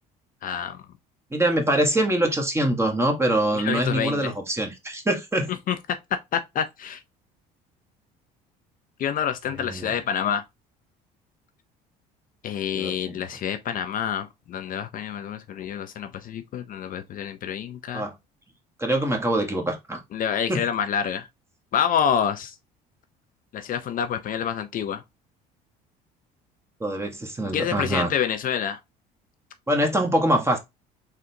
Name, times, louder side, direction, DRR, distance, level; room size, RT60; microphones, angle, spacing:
voice 1, 0.4-0.8 3.5-4.3 5.7-5.8 6.3-7.0 9.0-10.4 12.4-18.1 20.1-21.3 21.7-22.5 23.5-25.0 27.5-28.8, left 8 dB, 50° left, 0.5 m, -27 dB
voice 2, 1.3-5.5 9.6-9.9 12.7-13.2 17.9-18.1 18.8-20.0 20.5-20.6 26.8-28.1 29.7-30.6, right 1 dB, 15° right, 1.3 m, -24 dB
3.8 x 3.3 x 2.7 m
supercardioid pair, 85°, 19 cm